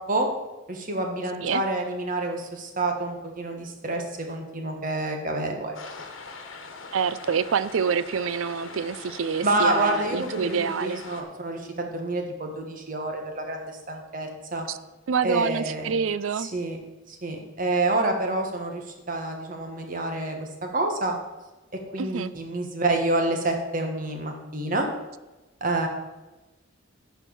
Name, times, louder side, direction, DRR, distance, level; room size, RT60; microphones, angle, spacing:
voice 1, 0.7-5.7 9.4-14.7 15.2-15.9 16.4-16.8 17.1-21.1 21.9-24.9 25.6-25.9, right 2 dB, 40° right, 3 dB, 1.4 m, -28 dB
sound 1, 5.7-11.2, left 4 dB, 75° left, 1.2 m, -42 dB
voice 2, 6.9-11.0 14.7-14.8 15.1-16.5 22.0-22.3, right 6 dB, 80° right, 16 dB, 0.4 m, -27 dB
11.0 x 4.7 x 7.0 m, 1.1 s
head